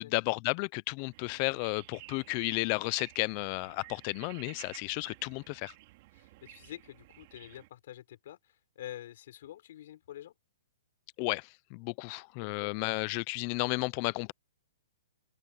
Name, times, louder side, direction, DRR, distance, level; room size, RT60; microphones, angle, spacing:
voice 1, 0.0-5.7 11.2-14.3, left 28 dB, 25° left, 0.4 m, -33 dB
sound 1, 1.1-7.7, right 21 dB, 35° right, 3.9 m, -53 dB
voice 2, 6.1-10.3 12.4-12.9, left 12 dB, 45° left, 6.3 m, -47 dB
open air
hypercardioid pair, 170°, 0 cm